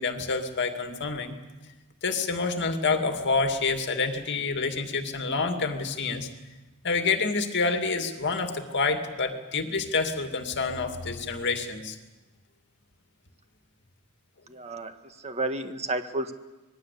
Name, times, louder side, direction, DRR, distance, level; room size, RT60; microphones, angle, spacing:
voice 1, 0.0-1.3 2.0-6.3 6.8-12.0, left 4 dB, 55° left, 6 dB, 2.4 m, -28 dB
voice 2, 14.5-16.3, right 2 dB, 30° right, 8 dB, 1.6 m, -32 dB
25.5 x 20.5 x 8.5 m, 1.1 s
head